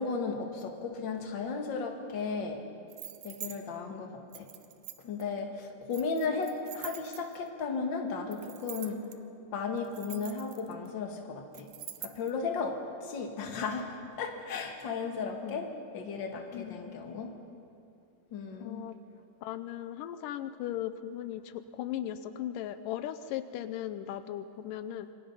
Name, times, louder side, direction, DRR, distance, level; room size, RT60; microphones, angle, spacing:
voice 1, 0.0-2.6 3.2-4.5 5.0-9.1 9.5-11.7 12.0-17.3 18.3-18.9, left 4 dB, 40° left, 3 dB, 2.2 m, -35 dB
sound 1, 2.9-3.6 4.3-5.2 5.9-7.5 8.3-9.1 9.8-10.9 11.5-12.3, right 12 dB, 70° right, 2.2 m, -44 dB
voice 2, 16.5-17.1 18.6-19.0 19.4-25.1, left 11 dB, 85° left, 11 dB, 2.3 m, -38 dB
26.5 x 23.0 x 5.6 m, 2.6 s
omnidirectional pair, 3.8 m